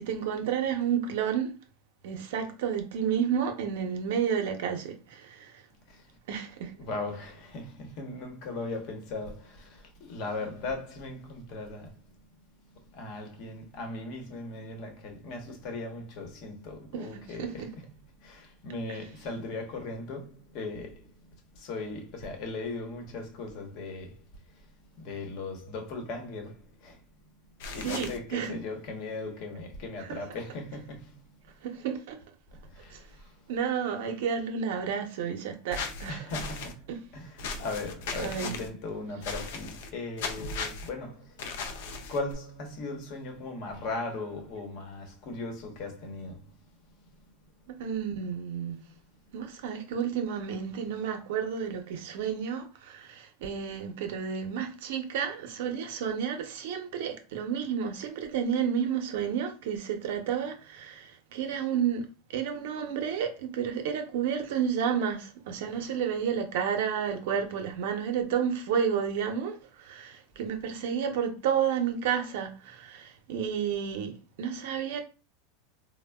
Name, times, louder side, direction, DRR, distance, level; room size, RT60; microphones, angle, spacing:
voice 1, 0.0-1.5 2.0-5.6 6.3-6.7 17.1-17.7 18.9-19.0 27.8-28.6 30.0-30.2 31.6-32.2 32.9-33.0 33.5-36.2 36.9-37.0 38.2-38.6 47.8-48.8 49.3-75.0, right 7 dB, 75° right, 0.6 m, -31 dB
voice 2, 5.8-6.2 6.8-17.8 18.1-27.0 27.4-31.4 32.5-33.5 36.1-46.6 46.9-47.7, left 3 dB, 55° left, 0.9 m, -39 dB
sound 1, 27.6-28.2 35.7-36.7 37.4-38.7 39.2-39.9 40.2-40.9 41.4-42.3, left 4 dB, 75° left, 0.4 m, -36 dB
3.3 x 2.1 x 2.2 m
supercardioid pair, 125°, 0 cm